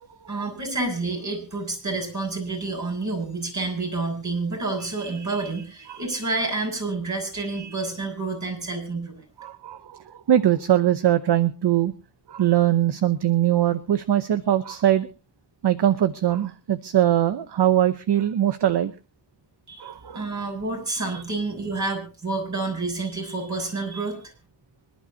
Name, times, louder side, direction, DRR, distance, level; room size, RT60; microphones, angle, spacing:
voice 1, 0.3-9.2 19.7-24.3, right 3 dB, 40° right, 2 dB, 6.5 m, -29 dB
voice 2, 9.4-11.9 12.3-15.1 15.6-18.9 19.8-20.2, right 11 dB, 65° right, 12 dB, 0.9 m, -21 dB
25.5 x 11.5 x 2.8 m, 0.33 s
wide cardioid pair, 85°, 44 cm